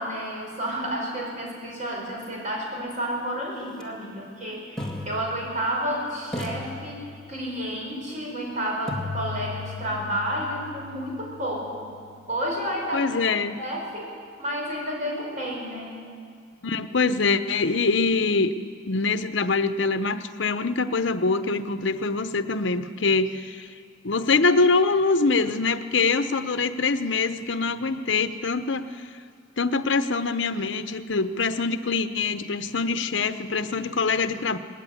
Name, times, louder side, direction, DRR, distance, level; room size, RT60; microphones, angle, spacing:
voice 1, 0.0-11.9 12.3-13.1 13.6-16.0, equal, 40° right, -2 dB, 6.0 m, -31 dB
sound 1, 3.7-3.8 4.8-5.9 6.3-7.6 8.9-12.8, left 3 dB, 5° left, 2.0 m, -37 dB
voice 2, 12.9-13.6 16.6-18.6 18.9-23.7 24.0-28.9 29.6-34.6, left 4 dB, 70° left, 10 dB, 0.9 m, -24 dB
19.5 x 15.5 x 9.5 m, 2.2 s
head